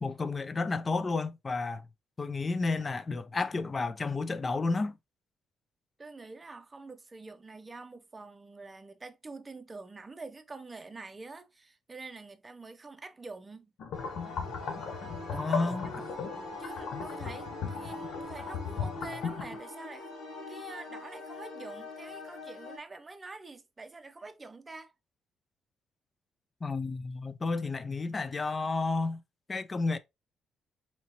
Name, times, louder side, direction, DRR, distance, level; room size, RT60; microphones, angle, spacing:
voice 1, 0.0-1.8 2.2-5.0 15.3-16.1 26.6-29.2 29.5-30.0, left 3 dB, 30° left, 0.4 m, -31 dB
voice 2, 6.0-13.7 15.3-16.2 16.6-20.1 20.5-24.9, right 3 dB, 25° right, 0.6 m, -46 dB
sound 1, 13.8-19.6, left 6 dB, 70° left, 0.7 m, -37 dB
sound 2, 13.9-22.8, left 2 dB, 90° left, 1.5 m, -43 dB
4.2 x 2.9 x 2.9 m
cardioid pair, 90°, 0 cm